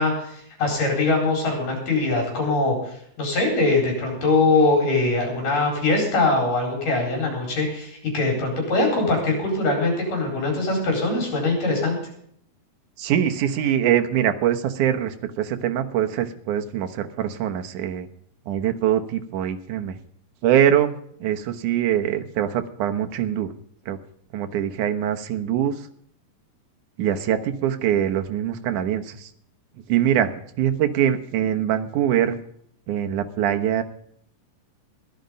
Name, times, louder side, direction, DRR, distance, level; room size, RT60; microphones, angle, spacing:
voice 1, 0.0-12.0, left 2 dB, 70° left, 1 dB, 6.0 m, -22 dB
voice 2, 13.0-18.1 18.5-20.0 20.4-23.5 23.9-24.0 24.3-25.8 27.0-29.3 29.9-32.4 32.9-33.8, right 10 dB, 70° right, 8 dB, 2.4 m, -23 dB
15.0 x 12.0 x 5.2 m, 0.66 s
omnidirectional pair, 3.9 m